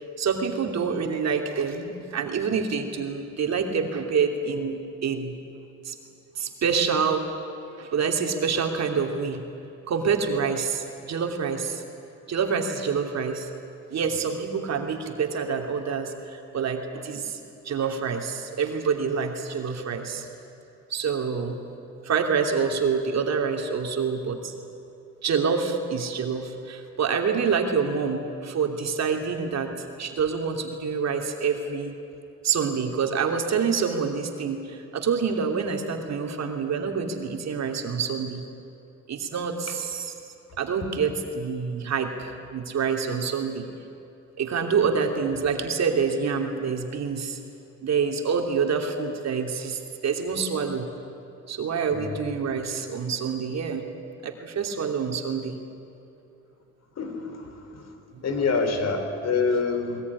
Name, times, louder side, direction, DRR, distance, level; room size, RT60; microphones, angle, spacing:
voice 1, 0.2-5.4 5.8-6.0 6.4-7.3 7.8-9.4 9.9-11.8 12.3-13.5 13.9-17.4 17.6-20.2 20.9-21.6 22.0-24.5 25.2-31.9 32.4-38.4 39.1-40.1 40.6-43.6 44.4-47.4 47.8-50.9 51.5-53.9 54.2-55.6 58.1-58.2, right 6 dB, 60° right, 3 dB, 2.8 m, -27 dB
voice 2, 57.0-57.4 58.2-60.0, left 4 dB, 55° left, 6 dB, 3.7 m, -25 dB
21.0 x 20.5 x 9.7 m, 2.8 s
cardioid pair, 90°, 30 cm